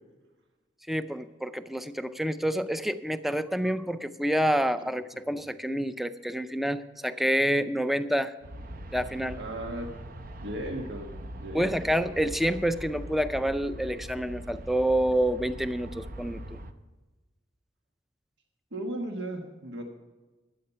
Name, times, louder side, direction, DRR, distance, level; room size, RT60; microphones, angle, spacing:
voice 1, 0.9-8.3 8.9-9.4 11.5-16.6, equal, ahead, 12 dB, 0.4 m, -28 dB
Aircraft, 8.4-16.7, right 1 dB, 55° right, 0.7 m, -42 dB
voice 2, 9.4-9.9 10.4-11.7 18.7-19.8, right 1 dB, 85° right, 3 dB, 1.3 m, -36 dB
12.0 x 8.5 x 5.7 m, 1.2 s
head